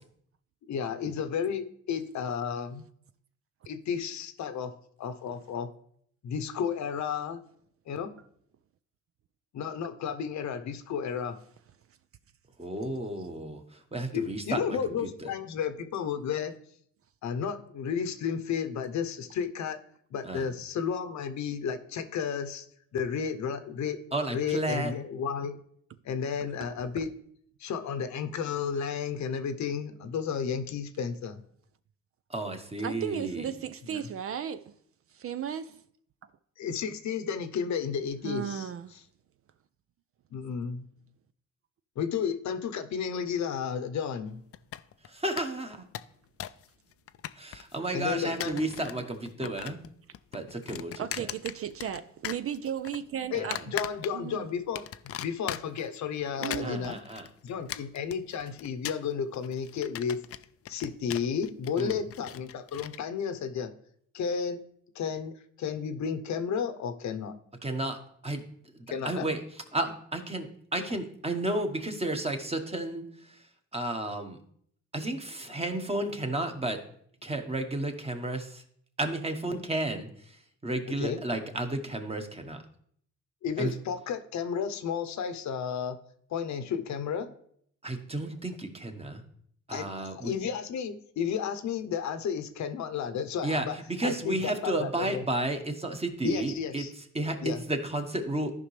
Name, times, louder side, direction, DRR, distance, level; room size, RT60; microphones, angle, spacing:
voice 1, 0.6-2.8 3.7-4.7 5.0-5.7 6.2-7.4 7.9-8.1 9.5-11.4 14.1-16.5 17.2-19.8 20.1-22.7 22.9-24.0 24.3-25.6 26.0-27.1 27.6-31.4 33.9-34.0 36.6-38.7 40.3-40.8 42.0-44.4 47.9-48.6 53.3-54.9 55.2-57.0 57.4-60.2 60.7-63.7 64.1-64.6 64.9-67.3 68.9-69.3 81.0-81.2 83.4-86.0 86.3-87.3 89.7-93.8 94.0-95.2 96.2-96.9 97.4-97.6, left 7 dB, 70° left, 0.9 m, -32 dB
voice 2, 12.6-14.8 15.2-15.3 20.2-20.5 24.1-24.9 32.3-33.5 45.1-45.9 47.4-49.8 50.3-51.0 53.3-53.6 56.6-57.3 61.8-62.0 67.6-68.0 68.2-68.4 69.0-69.4 69.7-73.4 73.7-74.4 74.9-76.8 77.2-78.6 79.0-80.4 80.6-82.6 83.6-83.7 87.8-89.2 89.7-90.3 93.4-96.8 97.1-98.5, right 2 dB, 20° right, 1.3 m, -32 dB
voice 3, 32.8-34.8 35.1-35.8 38.2-39.0 51.0-53.6 54.1-54.5 56.4-56.9, right 9 dB, 50° right, 0.5 m, -35 dB
sound 1, 44.5-45.1 45.4-45.5 45.7-46.7 46.9-47.8 48.2-49.0 49.3-49.9 50.1-52.0 52.2-53.0 53.5-54.4 54.7-55.9 56.3-63.0, left 11 dB, 50° left, 0.4 m, -39 dB
13.5 x 5.3 x 3.3 m
cardioid pair, 90°, 30 cm